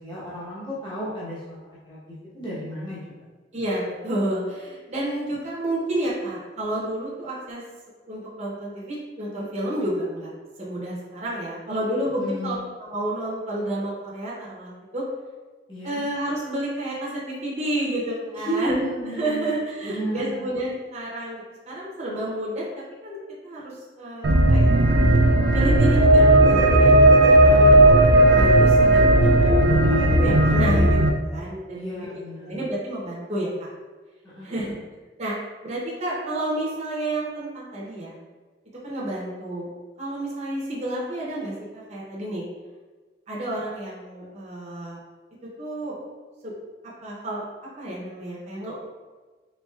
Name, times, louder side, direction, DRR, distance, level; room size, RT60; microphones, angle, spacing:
voice 1, 0.0-1.6 1.9-2.0 2.3-3.2 12.2-12.6 15.7-16.0 18.3-19.5 19.8-20.4 27.5-27.9 31.7-32.6 34.3-34.7, right 1 dB, 25° left, -9 dB, 1.0 m, -32 dB
voice 2, 3.5-7.6 8.1-10.3 10.6-15.0 15.8-22.7 23.0-23.2 23.4-27.9 28.3-33.5 34.4-34.7 35.2-35.3 35.6-38.1 38.8-39.7 40.0-42.4 43.3-45.0 45.6-46.0 46.4-46.5 47.0-47.4 47.8-48.8, right 1 dB, 35° right, -6 dB, 0.8 m, -30 dB
sound 1, 24.2-31.1, right 1 dB, 70° right, 0.4 m, -15 dB
4.3 x 3.7 x 2.4 m, 1.4 s
head